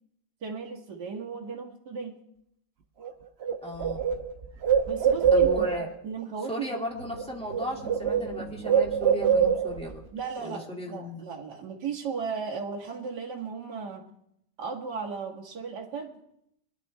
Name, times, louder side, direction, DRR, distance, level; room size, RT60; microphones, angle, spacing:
voice 1, 0.4-2.2 4.9-5.7 6.0-6.9 10.1-10.7 10.9-14.1 14.6-16.2, right 5 dB, 65° right, 0 dB, 2.3 m, -35 dB
Bird, 3.0-3.1 3.4-5.9 7.0-7.2 7.5-9.9, right 7 dB, 45° right, 1.0 m, -24 dB
voice 2, 3.6-4.0 5.3-5.9 6.5-10.0 10.4-11.2, equal, 5° left, -2 dB, 2.1 m, -36 dB
22.5 x 11.0 x 3.3 m, 0.74 s
omnidirectional pair, 1.9 m